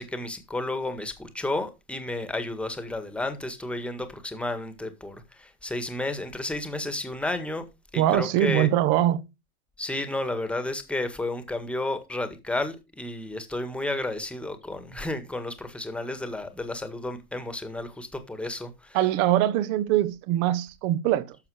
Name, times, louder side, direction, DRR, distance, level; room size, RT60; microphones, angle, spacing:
voice 1, 0.0-7.6 7.9-8.7 9.8-19.0, left 2 dB, ahead, 1.7 m, -32 dB
voice 2, 7.9-9.2 18.9-21.4, right 13 dB, 35° right, 1.1 m, -23 dB
12.0 x 7.0 x 4.9 m
hypercardioid pair, 135°, 46 cm